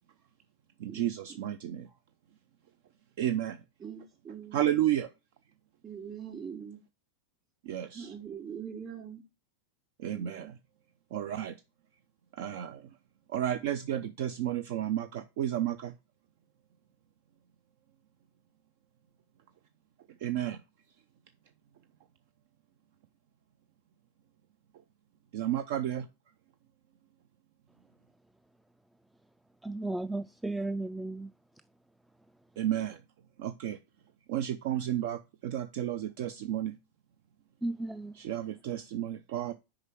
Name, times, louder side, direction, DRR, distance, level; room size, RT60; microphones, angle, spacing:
voice 1, 0.8-1.9 3.2-3.6 4.5-5.1 7.6-8.1 10.0-10.5 11.1-11.6 12.3-12.9 13.3-15.9 20.2-20.6 25.3-26.1 32.6-33.0 33.4-33.8 34.3-36.8 38.2-39.5, right 11 dB, 60° right, 0.5 m, -32 dB
voice 2, 3.8-4.9 5.8-6.8 7.9-9.2 10.1-10.5, right 7 dB, 30° right, 3.2 m, -43 dB
voice 3, 29.6-31.3 37.6-38.2, right 2 dB, 5° right, 0.3 m, -34 dB
6.5 x 4.9 x 6.1 m
figure-of-eight pair, 90°, 0 cm